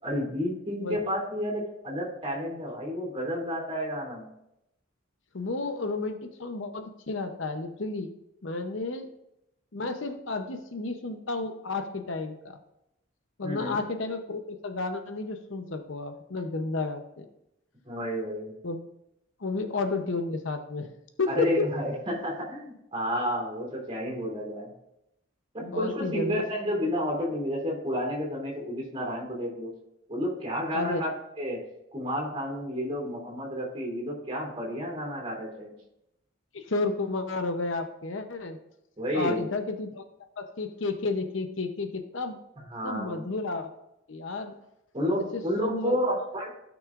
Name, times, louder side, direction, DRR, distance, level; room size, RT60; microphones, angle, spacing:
voice 1, 0.0-4.3 13.4-13.8 17.8-18.5 21.3-24.7 25.5-29.7 30.1-31.6 31.9-35.7 39.0-39.4 42.7-43.2 44.9-46.5, equal, 30° right, -2 dB, 2.9 m, -31 dB
voice 2, 5.3-8.1 8.4-9.1 9.7-12.6 13.4-17.2 18.6-18.8 19.4-20.9 21.2-21.7 25.6-26.4 30.7-31.0 36.5-38.6 39.1-40.0 40.4-42.4 42.8-43.7 44.1-44.5 45.3-46.0, left 3 dB, 70° left, 7 dB, 0.8 m, -32 dB
15.5 x 6.1 x 2.5 m, 0.84 s
head